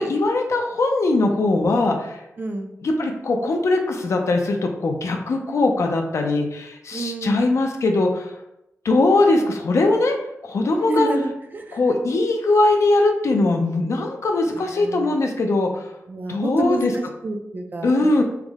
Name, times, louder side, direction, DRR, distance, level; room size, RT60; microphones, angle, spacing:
voice 1, 0.0-2.2 2.8-8.3 8.8-10.2 10.4-11.1 11.7-15.9 16.3-16.9 17.8-18.2, left 2 dB, 65° left, 3 dB, 0.5 m, -20 dB
voice 2, 2.4-2.7 6.9-7.4 10.9-11.8 14.5-15.2 16.1-17.9, right 2 dB, 35° right, 5 dB, 0.3 m, -28 dB
3.5 x 2.0 x 3.4 m, 0.86 s
wide cardioid pair, 130°, 5 cm